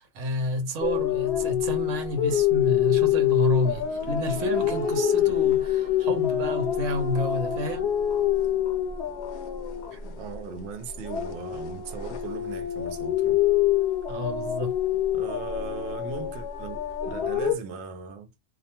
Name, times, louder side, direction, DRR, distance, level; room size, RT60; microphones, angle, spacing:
voice 1, 0.0-7.9 9.9-10.2 14.1-14.7, left 1 dB, 90° right, 1.0 m, -29 dB
sound 1, 0.8-10.6 10.9-17.6, left 11 dB, 70° left, 0.8 m, -26 dB
sound 2, 2.6-13.4 13.7-13.8 14.7-14.8, right 5 dB, 35° right, 0.5 m, -47 dB
voice 2, 10.2-13.4 15.1-18.3, right 5 dB, 70° right, 0.8 m, -38 dB
2.3 x 2.2 x 2.8 m
omnidirectional pair, 1.3 m